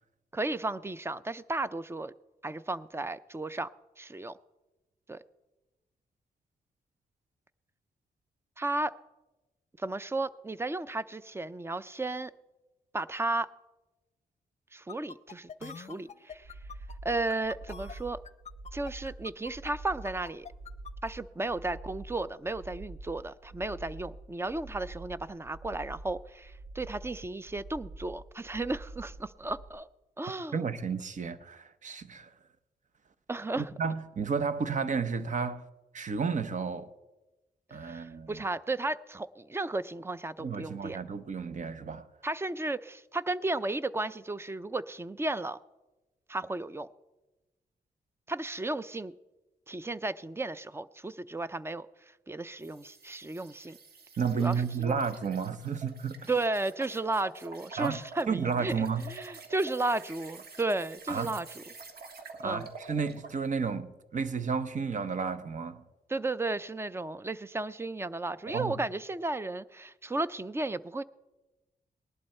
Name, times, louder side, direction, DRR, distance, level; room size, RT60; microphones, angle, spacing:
voice 1, 0.3-2.1 2.4-3.7 4.0-4.4 5.1-5.2 8.6-8.9 9.8-12.3 12.9-13.5 14.7-16.5 17.0-18.2 18.7-20.5 21.0-29.9 30.2-30.6 33.3-33.7 37.8-41.0 42.2-45.6 46.3-46.9 48.3-49.1 49.7-51.9 52.3-53.8 54.4-55.0 56.3-61.6 62.4-62.7 66.1-71.0, right 2 dB, 15° right, 0.5 m, -34 dB
sound 1, 14.9-21.1, left 7 dB, 45° left, 0.6 m, -45 dB
sound 2, 16.3-29.7, right 2 dB, 70° right, 1.4 m, -46 dB
voice 2, 30.5-32.3 33.6-35.6 35.9-36.9 37.7-38.4 40.4-42.0 54.2-56.3 57.8-58.0 58.3-59.1 61.1-61.3 62.4-65.8 68.5-68.8, right 5 dB, 50° right, 0.8 m, -32 dB
sound 3, 52.6-63.4, right 5 dB, 85° right, 1.6 m, -48 dB
19.0 x 11.5 x 4.3 m
cardioid pair, 90°, 16 cm